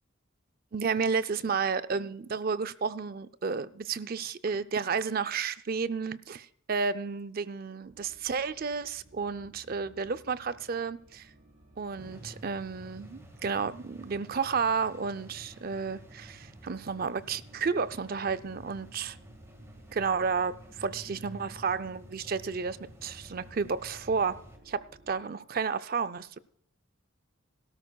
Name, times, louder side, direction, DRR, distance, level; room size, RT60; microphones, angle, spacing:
voice 1, 0.7-11.3 11.8-19.2 19.9-24.4 24.7-26.4, right 5 dB, 45° right, 0.5 m, -32 dB
sound 1, 7.8-25.2, right 1 dB, 75° right, 6.0 m, -58 dB
sound 2, 12.0-24.6, equal, 15° right, 1.8 m, -51 dB
18.0 x 12.5 x 2.3 m
head